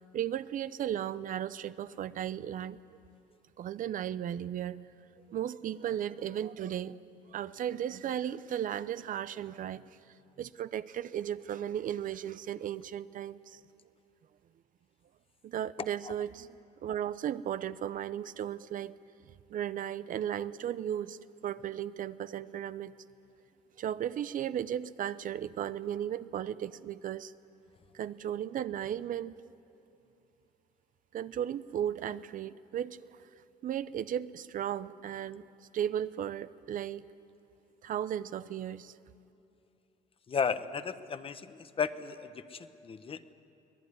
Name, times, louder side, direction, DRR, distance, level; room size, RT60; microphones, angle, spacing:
voice 1, 0.0-2.8 3.6-4.9 5.3-7.0 7.3-10.0 10.4-13.6 15.4-18.9 19.5-21.2 21.4-22.9 23.8-27.3 27.9-29.4 31.1-33.3 33.6-37.1 37.8-38.9, right 10 dB, 50° right, 15 dB, 0.6 m, -35 dB
voice 2, 40.3-43.3, left 6 dB, 35° left, 12 dB, 1.0 m, -34 dB
24.5 x 18.5 x 9.6 m, 2.8 s
cardioid pair, 110°, 17 cm